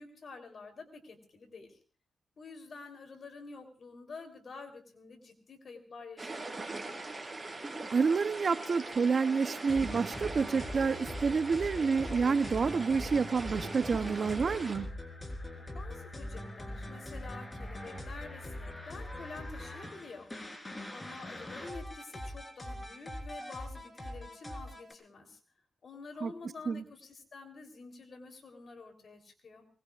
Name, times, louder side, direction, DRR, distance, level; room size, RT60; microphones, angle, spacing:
voice 1, 0.0-1.8 2.4-6.7 15.5-20.3 20.9-25.4 25.8-29.7, left 4 dB, 60° left, 5 dB, 3.7 m, -48 dB
sound 1, 6.2-14.8, right 2 dB, 25° right, 5.2 m, -41 dB
voice 2, 7.9-14.9 26.2-26.3 26.7-26.8, right 5 dB, 55° right, 11 dB, 0.9 m, -29 dB
sound 2, 9.7-24.9, left 1 dB, 20° left, 4.2 m, -42 dB
23.5 x 20.5 x 2.5 m, 0.41 s
cardioid pair, 75°, 0 cm